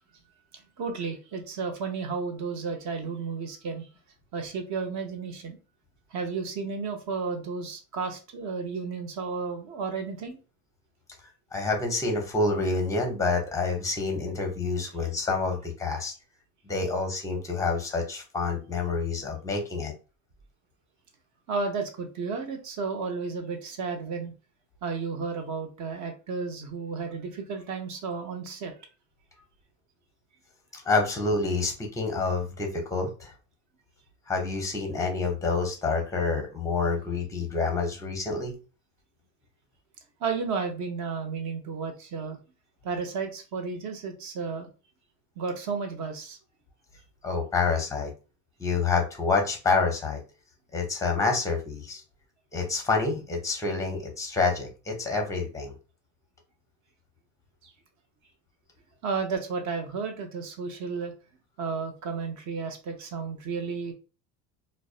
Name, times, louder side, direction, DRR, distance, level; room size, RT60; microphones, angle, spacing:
voice 1, 0.8-3.9 4.3-5.6 6.1-10.4 21.5-24.3 24.8-28.7 40.2-42.4 42.8-44.7 45.4-46.4 57.6-57.7 59.0-61.1 61.6-63.9, right 5 dB, 40° right, 5 dB, 0.7 m, -33 dB
voice 2, 11.5-16.1 16.7-19.9 30.7-33.3 34.3-38.5 47.2-48.1 48.6-50.2 50.7-52.0 52.5-55.7, left 4 dB, 5° left, 3 dB, 0.6 m, -28 dB
2.5 x 2.1 x 2.4 m, 0.33 s
supercardioid pair, 110°, 45 cm